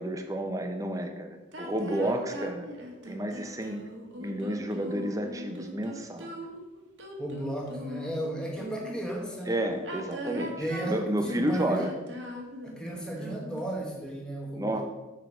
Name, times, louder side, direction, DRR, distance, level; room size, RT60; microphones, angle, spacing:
voice 1, 0.0-2.7 3.1-3.8 4.2-6.3 9.5-11.9 14.6-14.8, right 1 dB, 15° right, 5 dB, 0.7 m, -31 dB
sound 1, 1.5-9.0 9.7-13.8, equal, 80° right, 1.4 m, -41 dB
voice 2, 7.2-9.6 10.6-11.9 12.6-14.8, right 1 dB, 5° left, -2 dB, 1.3 m, -34 dB
7.1 x 4.6 x 6.0 m, 1.1 s
head